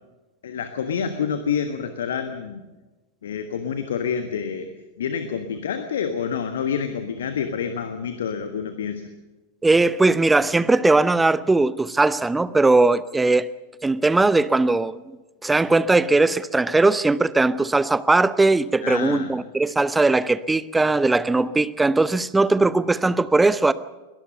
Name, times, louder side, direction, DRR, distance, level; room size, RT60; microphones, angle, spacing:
voice 1, 0.4-2.6 3.2-9.1 18.8-19.3, left 7 dB, 60° left, 1.4 m, -28 dB
voice 2, 9.6-13.5 13.8-15.2 15.4-23.7, right 3 dB, 10° right, 0.8 m, -19 dB
23.0 x 18.5 x 6.8 m
figure-of-eight pair, 90°, 0 cm